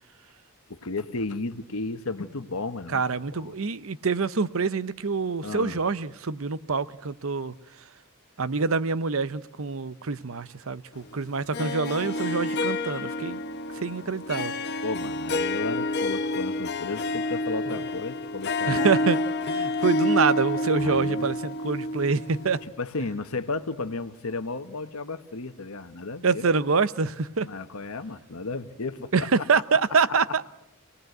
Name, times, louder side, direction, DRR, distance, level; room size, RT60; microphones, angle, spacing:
voice 1, 0.7-3.0 3.3-3.5 5.4-5.8 14.8-18.9 20.8-21.3 22.8-26.4 27.4-29.4, left 3 dB, 75° left, 1.2 m, -33 dB
voice 2, 2.9-7.5 8.4-13.4 13.7-14.5 17.7-17.8 18.7-19.2 19.5-22.6 26.2-27.5 29.1-30.5, right 4 dB, 70° right, 0.8 m, -26 dB
Harp, 11.5-22.6, left 1 dB, 50° left, 1.2 m, -28 dB
27.0 x 18.5 x 8.0 m
head